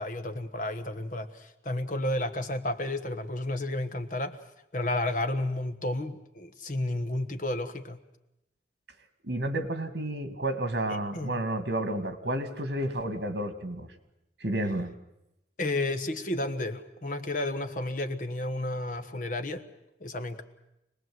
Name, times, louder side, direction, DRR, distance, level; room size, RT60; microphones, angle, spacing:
voice 1, 0.0-4.4 4.7-8.0 10.9-11.3 15.6-19.6 20.0-20.4, left 1 dB, 50° left, 8 dB, 1.4 m, -32 dB
voice 2, 9.2-13.9 14.4-14.9, right 1 dB, 70° right, 8 dB, 2.2 m, -31 dB
26.5 x 19.5 x 7.9 m, 0.87 s
head